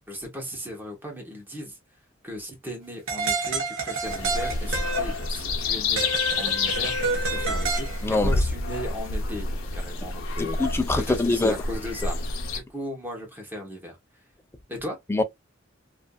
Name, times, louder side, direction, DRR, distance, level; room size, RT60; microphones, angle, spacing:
voice 1, 0.1-1.8 2.2-6.0 6.3-9.5 9.7-14.0 14.7-15.0, left 1 dB, 10° right, 1.0 m, -36 dB
sound 1, 3.1-5.3 6.0-8.0, right 3 dB, 70° right, 0.8 m, -28 dB
sound 2, 4.0-12.6, left 3 dB, 90° left, 0.7 m, -29 dB
voice 2, 10.4-11.5 15.1-15.2, left 2 dB, 10° left, 0.4 m, -23 dB
2.5 x 2.5 x 2.2 m
head